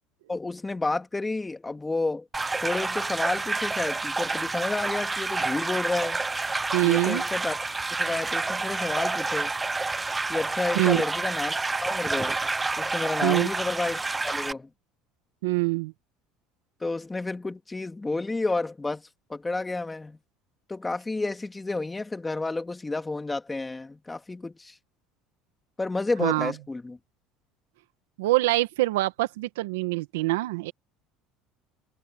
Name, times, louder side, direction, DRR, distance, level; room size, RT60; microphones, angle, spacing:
voice 1, 0.3-2.3 2.6-6.2 6.8-7.7 8.0-9.5 10.3-12.3 12.8-14.0 14.2-14.7 16.8-19.0 19.3-20.2 20.7-24.8 25.8-27.0, left 3 dB, 15° left, 2.6 m, -30 dB
sound 1, 2.3-14.5, right 3 dB, 15° right, 0.9 m, -29 dB
voice 2, 6.7-7.2 10.7-11.0 13.2-13.5 15.4-15.9 26.2-26.5 28.2-30.7, right 20 dB, 85° right, 1.8 m, -24 dB
supercardioid pair, 95°, 0 cm